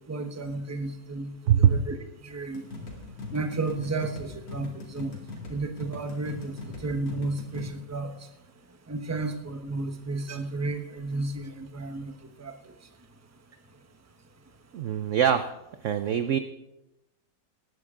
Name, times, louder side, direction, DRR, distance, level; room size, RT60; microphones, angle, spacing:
voice 1, 0.0-2.6 3.3-5.1 5.5-8.1 8.9-12.1 12.4-12.6, right 3 dB, 15° right, 6 dB, 0.7 m, -33 dB
sound 1, 2.5-7.7, left 3 dB, 80° left, 3.2 m, -40 dB
voice 2, 14.7-15.4 15.8-16.4, right 9 dB, 75° right, 10 dB, 0.7 m, -22 dB
19.0 x 11.0 x 3.7 m, 0.93 s
omnidirectional pair, 1.9 m